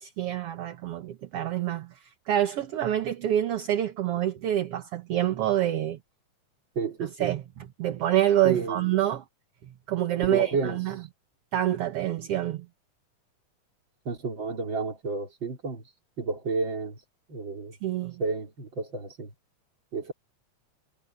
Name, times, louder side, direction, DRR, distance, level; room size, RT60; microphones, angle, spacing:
voice 1, 0.0-6.0 7.0-9.2 9.6-11.0 11.5-12.7 17.8-18.2, right 12 dB, 60° right, 1.9 m, -27 dB
voice 2, 6.8-7.3 8.4-8.8 10.2-10.8 14.1-15.8 16.2-17.0 17.3-17.7 18.2-19.3 19.9-20.1, right 4 dB, 40° right, 4.0 m, -31 dB
omnidirectional pair, 3.3 m